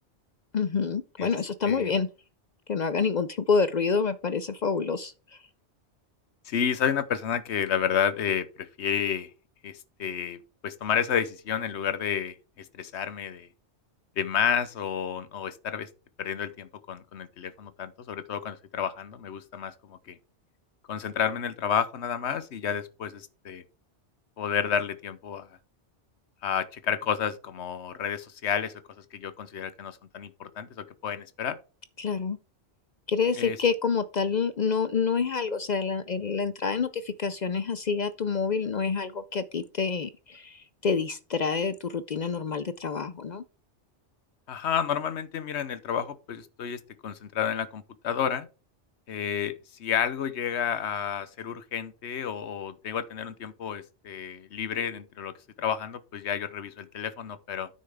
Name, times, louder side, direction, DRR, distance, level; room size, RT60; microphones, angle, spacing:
voice 1, 0.5-2.1 2.7-5.4 32.0-32.4 33.1-43.4, left 5 dB, 50° left, 0.5 m, -27 dB
voice 2, 6.4-9.3 9.6-13.5 14.2-15.9 16.2-20.2 20.9-23.6 24.4-25.5 26.4-28.7 29.1-31.6 33.4-33.6 44.5-48.5 49.1-49.5 49.8-57.7, left 8 dB, 70° left, 1.1 m, -31 dB
9.3 x 6.6 x 3.5 m
omnidirectional pair, 1.2 m